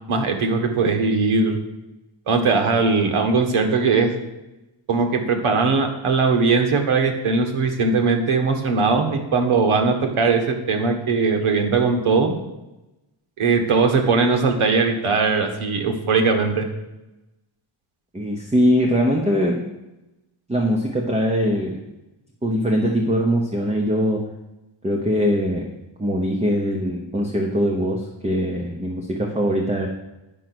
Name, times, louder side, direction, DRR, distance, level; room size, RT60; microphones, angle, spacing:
voice 1, 0.1-1.6 2.3-4.1 4.9-12.3 13.4-16.7, right 4 dB, 75° right, 5 dB, 1.6 m, -20 dB
voice 2, 18.1-19.6 20.5-21.8 22.4-24.2 24.8-25.7 26.0-29.9, equal, 15° right, 1 dB, 0.9 m, -21 dB
9.2 x 6.3 x 6.1 m, 0.98 s
wide cardioid pair, 150°, 50 cm